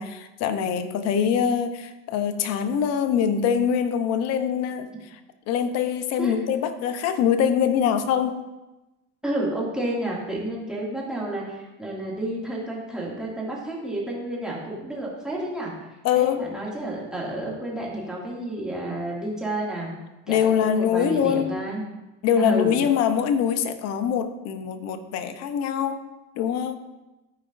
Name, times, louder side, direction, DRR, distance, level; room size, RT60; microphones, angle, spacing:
voice 1, 0.0-4.9 5.5-8.4 16.0-16.4 20.3-21.6 22.2-26.1 26.4-26.8, left 8 dB, 55° left, 9 dB, 0.8 m, -23 dB
voice 2, 9.2-15.8 16.1-19.9 20.3-21.9 22.4-22.8, right 1 dB, ahead, -5 dB, 2.2 m, -30 dB
13.0 x 5.0 x 2.6 m, 1.0 s
supercardioid pair, 110°, 31 cm